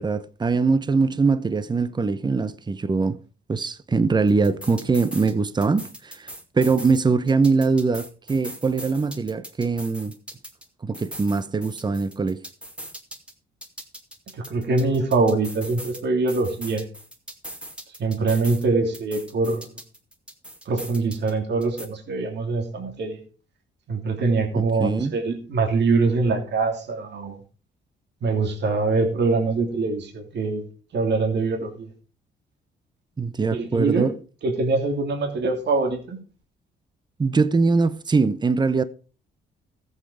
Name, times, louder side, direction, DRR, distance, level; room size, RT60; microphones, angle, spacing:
voice 1, 0.0-3.2 3.5-10.1 10.8-12.4 24.6-25.2 33.2-34.2 37.2-38.8, right 4 dB, 20° right, 0.8 m, -22 dB
sound 1, 4.3-5.3 5.6-7.0 7.3-10.7 10.9-13.3 13.6-16.0 16.3-18.7 18.9-21.3 21.6-21.9, equal, 5° right, 2.7 m, -40 dB
voice 2, 14.4-16.8 18.0-19.7 20.7-23.2 23.9-27.4 28.2-30.6 30.9-31.9 33.5-34.1 34.4-36.2, right 3 dB, 60° right, 3.0 m, -23 dB
14.0 x 8.2 x 5.0 m
cardioid pair, 90°, 20 cm